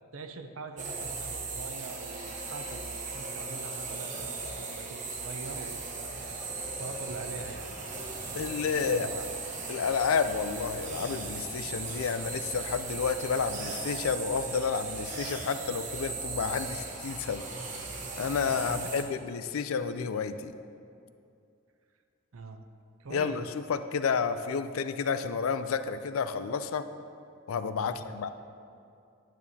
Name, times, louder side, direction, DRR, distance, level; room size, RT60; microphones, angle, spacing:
voice 1, 0.1-6.1 6.8-7.8 8.7-9.3 18.6-18.7 19.5-19.6 22.3-22.7 23.0-23.5 27.8-28.3, right 3 dB, 80° right, 6 dB, 0.6 m, -43 dB
sound 1, 0.8-19.0, right 3 dB, 35° right, 0.9 m, -38 dB
sound 2, 6.2-17.6, right 1 dB, 60° right, 1.1 m, -52 dB
voice 2, 8.3-9.1 9.7-17.5 18.2-20.5 23.1-26.9 27.5-28.3, left 6 dB, 85° left, 11 dB, 0.4 m, -30 dB
10.5 x 9.3 x 2.8 m, 2.5 s
head